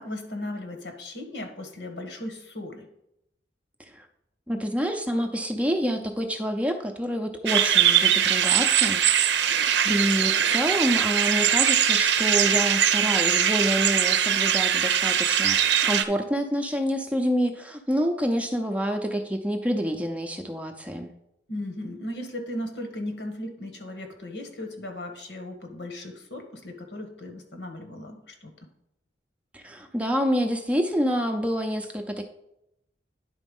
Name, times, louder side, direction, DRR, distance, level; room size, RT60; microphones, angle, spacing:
voice 1, 0.0-2.9 21.5-28.5, left 1 dB, 75° left, 5 dB, 1.5 m, -36 dB
voice 2, 4.5-9.0 9.4-21.1 29.5-32.2, equal, 5° right, 4 dB, 0.6 m, -27 dB
sound 1, 7.5-16.0, right 9 dB, 75° right, 0.6 m, -21 dB
10.0 x 4.1 x 5.4 m, 0.80 s
head